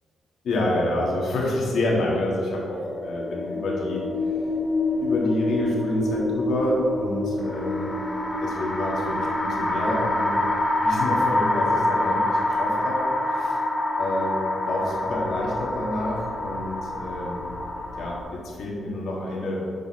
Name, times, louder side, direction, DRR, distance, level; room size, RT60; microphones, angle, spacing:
voice 1, 0.4-4.0 5.0-7.9 8.4-10.3 10.8-13.6 14.0-17.5 18.0-19.7, left 1 dB, 70° left, -3 dB, 1.7 m, -28 dB
sound 1, 2.7-18.2, left 1 dB, 25° left, 1.0 m, -26 dB
7.3 x 5.9 x 4.3 m, 2.3 s
cardioid pair, 130°, 0 cm